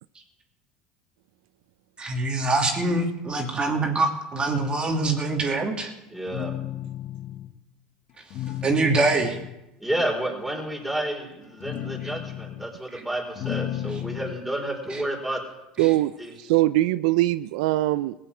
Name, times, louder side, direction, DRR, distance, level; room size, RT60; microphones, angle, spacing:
voice 1, 2.0-5.9 8.6-9.4 12.0-12.1 12.9-13.0 14.9-15.0 15.8-15.9, right 3 dB, 25° right, 2 dB, 2.6 m, -24 dB
voice 2, 6.1-6.5 9.8-15.4 16.2-16.3, right 1 dB, ahead, -1 dB, 4.6 m, -30 dB
sound 1, 6.3-7.6 8.3-9.6 11.4-12.7 13.2-14.5, left 12 dB, 55° left, 1.1 m, -33 dB
voice 3, 15.8-16.1 16.4-18.1, right 16 dB, 80° right, 14 dB, 0.5 m, -22 dB
17.0 x 7.7 x 8.3 m, 0.91 s
supercardioid pair, 100°, 4 cm